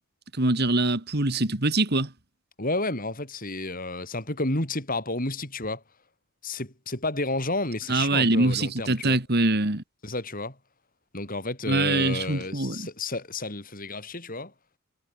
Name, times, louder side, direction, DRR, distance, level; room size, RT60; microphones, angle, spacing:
voice 1, 0.3-2.1 7.9-9.8 11.7-12.9, right 2 dB, 50° right, 2.2 m, -24 dB
voice 2, 2.6-5.8 6.4-9.2 10.0-10.6 11.1-14.5, left 2 dB, 40° left, 7.7 m, -31 dB
head